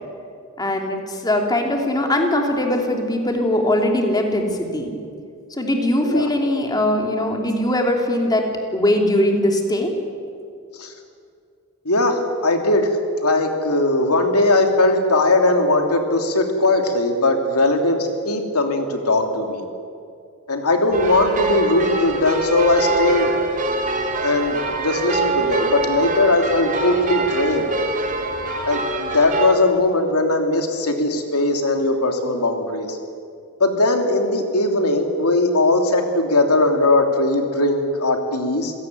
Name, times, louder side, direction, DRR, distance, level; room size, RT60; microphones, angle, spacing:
voice 1, 0.6-4.9 5.6-8.4 8.7-9.9, left 1 dB, 20° left, 2 dB, 3.0 m, -20 dB
voice 2, 11.8-12.9 13.2-19.6 20.5-23.3 24.2-27.7 28.6-33.0 33.6-38.7, left 2 dB, 80° left, 4 dB, 3.1 m, -19 dB
sound 1, 20.9-29.5, right 3 dB, 35° right, 2.4 m, -24 dB
27.5 x 17.0 x 9.4 m, 2.4 s
head